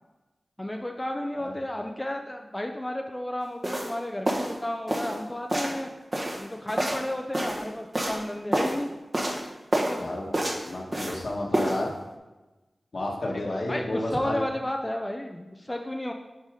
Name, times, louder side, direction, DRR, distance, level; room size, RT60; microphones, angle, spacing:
voice 1, 0.6-5.9 6.4-8.9 9.8-10.1 13.3-16.1, left 1 dB, 20° left, 3 dB, 0.6 m, -33 dB
sound 1, 3.6-3.9 4.3-4.6 4.9-5.2 5.5-5.8 6.1-7.6 7.9-8.2 8.5-8.8 9.1-9.4 9.7-10.0 10.3-11.2 11.5-11.8, right 1 dB, 40° right, 1.5 m, -28 dB
voice 2, 10.0-10.3 10.7-11.9 12.9-14.4, left 1 dB, 70° left, -3 dB, 1.6 m, -31 dB
8.2 x 4.8 x 3.8 m, 1.1 s
cardioid pair, 45°, 0 cm